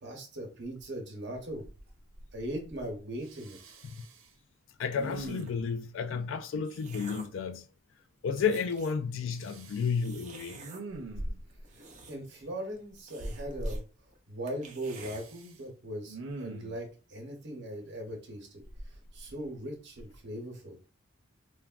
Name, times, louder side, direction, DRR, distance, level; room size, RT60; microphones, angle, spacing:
voice 1, 0.0-1.7 2.3-3.6 11.7-13.8 14.3-18.6 19.1-20.8, right 1 dB, 60° right, 0.9 m, -39 dB
Respiratory sounds, 0.8-0.9 1.3-2.9 3.2-4.3 4.9-5.8 9.4-10.0 10.5-11.6 13.2-13.8 14.8-15.5 16.0-16.8 18.6-19.6 20.0-20.2, right 1 dB, 90° right, 0.6 m, -41 dB
voice 2, 4.8-7.7 8.2-10.6, left 6 dB, 70° left, 0.3 m, -32 dB
sound 1, 4.9-5.6 6.3-7.4 8.0-8.1 8.3-9.1 10.0-10.8 11.5-12.4 12.7-12.8 13.1-13.8 14.1-14.2 14.5-15.2, right 3 dB, 35° right, 0.5 m, -50 dB
3.2 x 2.2 x 2.4 m
head